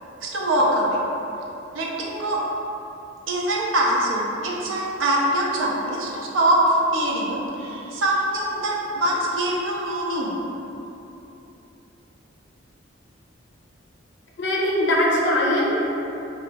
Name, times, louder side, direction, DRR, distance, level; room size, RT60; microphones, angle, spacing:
voice 1, 0.2-1.0 1.7-2.4 3.3-10.4, right 1 dB, 75° right, -2 dB, 0.5 m, -23 dB
voice 2, 14.4-15.8, left 1 dB, 65° left, -3 dB, 0.5 m, -21 dB
2.9 x 2.3 x 3.3 m, 3.0 s
head